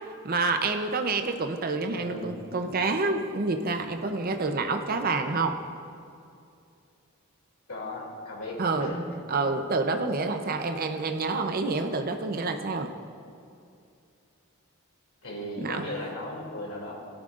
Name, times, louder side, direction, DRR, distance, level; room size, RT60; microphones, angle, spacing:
voice 1, 0.2-5.6 8.6-8.9 9.3-12.9 15.6-15.8, right 3 dB, 45° right, 6 dB, 0.6 m, -28 dB
voice 2, 2.0-2.3 7.7-9.0 15.2-16.9, left 1 dB, 80° left, -2 dB, 2.7 m, -36 dB
17.5 x 11.5 x 2.5 m, 2.5 s
head